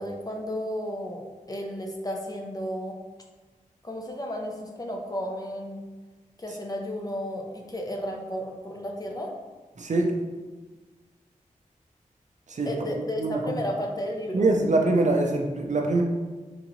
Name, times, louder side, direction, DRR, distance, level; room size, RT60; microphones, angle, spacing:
voice 1, 0.0-3.0 3.8-5.8 6.4-9.3 12.7-14.4, equal, 25° left, 1 dB, 0.6 m, -33 dB
voice 2, 9.8-10.1 12.5-13.6 14.3-16.0, right 2 dB, 60° right, 2 dB, 0.6 m, -24 dB
3.8 x 3.6 x 3.0 m, 1.3 s
wide cardioid pair, 80°, 14 cm